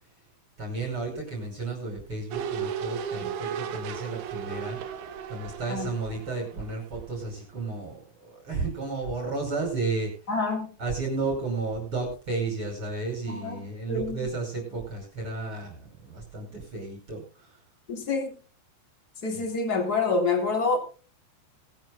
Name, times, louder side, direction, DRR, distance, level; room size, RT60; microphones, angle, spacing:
voice 1, 0.6-5.0 5.3-8.0 8.2-10.3 10.8-17.6, right 3 dB, 30° right, 5.9 m, -33 dB
sound 1, 2.3-7.3 7.6-7.7, right 8 dB, 70° right, 1.8 m, -35 dB
voice 2, 10.3-10.7 13.3-13.6 13.9-14.2 17.9-18.3 19.2-20.8, left 4 dB, 25° left, 3.1 m, -27 dB
20.5 x 13.5 x 2.3 m
omnidirectional pair, 5.2 m